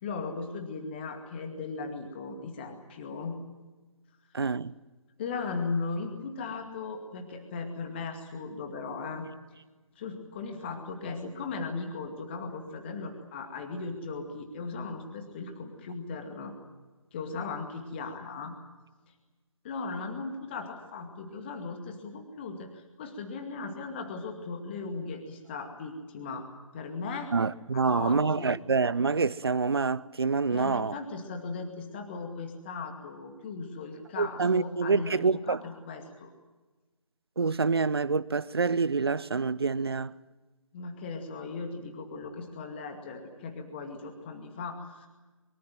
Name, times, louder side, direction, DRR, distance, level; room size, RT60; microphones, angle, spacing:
voice 1, 0.0-3.4 5.2-9.3 10.0-16.6 17.1-18.6 19.6-26.5 26.7-27.3 27.7-28.5 30.5-36.3 40.7-45.1, left 4 dB, 20° left, 2.2 m, -37 dB
voice 2, 4.3-4.7 27.3-31.0 34.2-35.6 37.4-40.1, right 4 dB, 45° right, 0.8 m, -27 dB
24.0 x 24.0 x 7.7 m
figure-of-eight pair, 155°, 17 cm